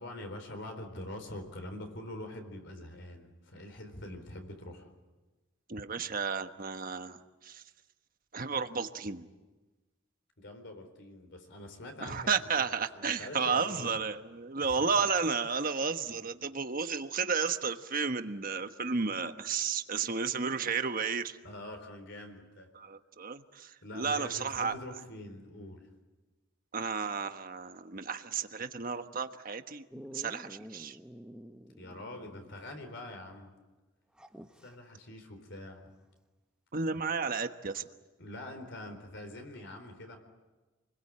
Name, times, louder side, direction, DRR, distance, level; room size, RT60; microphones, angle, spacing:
voice 1, 0.0-4.9 10.4-12.3 12.6-12.7 12.9-14.0 14.6-15.0 21.4-22.7 23.8-25.9 31.8-33.5 34.6-35.9 38.2-40.2, left 1 dB, 60° left, 5 dB, 4.1 m, -44 dB
voice 2, 5.7-7.6 8.3-9.3 12.0-21.4 22.7-24.8 26.7-31.0 36.7-37.9, right 5 dB, 45° right, 8 dB, 1.2 m, -33 dB
Dog, 29.9-32.6 32.9-33.0 34.1-34.7 36.8-36.9, equal, 5° right, 1.0 m, -49 dB
28.0 x 21.5 x 8.7 m, 1.2 s
head